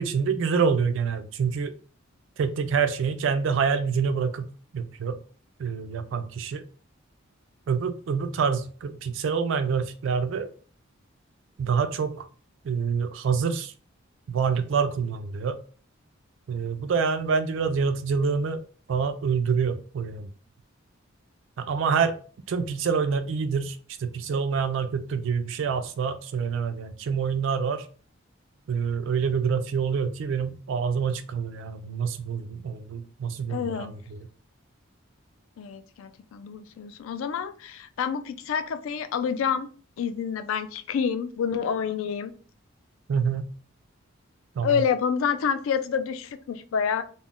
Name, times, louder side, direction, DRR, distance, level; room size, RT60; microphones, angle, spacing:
voice 1, 0.0-1.7 2.4-4.5 4.7-5.2 5.6-6.6 7.7-10.5 11.6-12.3 12.6-13.7 14.3-15.6 16.5-18.6 18.9-20.3 21.6-22.2 22.5-27.9 28.7-34.3 43.1-43.5 44.6-44.8, right 6 dB, 65° right, 9 dB, 0.3 m, -26 dB
voice 2, 33.5-33.9 35.6-39.7 40.0-42.3 44.6-47.0, left 7 dB, 75° left, 10 dB, 0.3 m, -28 dB
2.3 x 2.1 x 3.6 m, 0.40 s
head